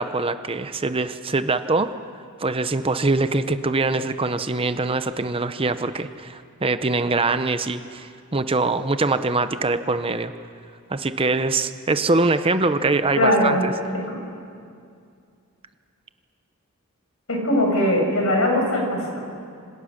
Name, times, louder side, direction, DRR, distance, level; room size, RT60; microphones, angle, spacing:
voice 1, 0.0-1.9 2.4-10.3 10.9-13.7, right 3 dB, 25° right, 10 dB, 0.7 m, -23 dB
voice 2, 13.2-13.7 14.1-14.2 17.3-19.2, left 1 dB, 65° left, 0 dB, 6.9 m, -20 dB
27.0 x 25.5 x 6.5 m, 2.3 s
head